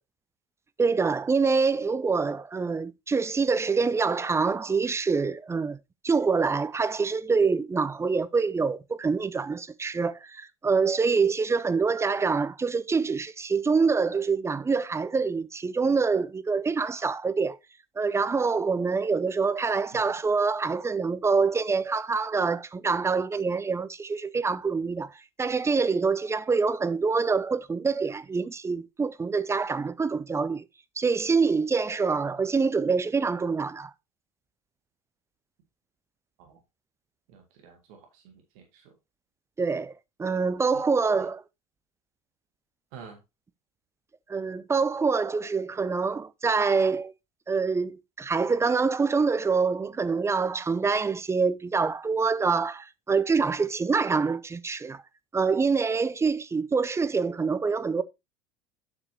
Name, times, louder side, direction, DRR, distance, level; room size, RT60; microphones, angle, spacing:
voice 1, 0.8-5.8 6.0-17.6 18.0-25.1 25.4-30.6 31.0-33.9 39.6-39.9 40.2-41.4 44.3-47.1 47.5-55.0 55.3-58.0, right 4 dB, 15° right, 0.5 m, -25 dB
voice 2, 37.3-38.9 42.9-43.2, right 6 dB, 60° right, 2.0 m, -49 dB
8.3 x 5.9 x 2.8 m
figure-of-eight pair, 70°, 19 cm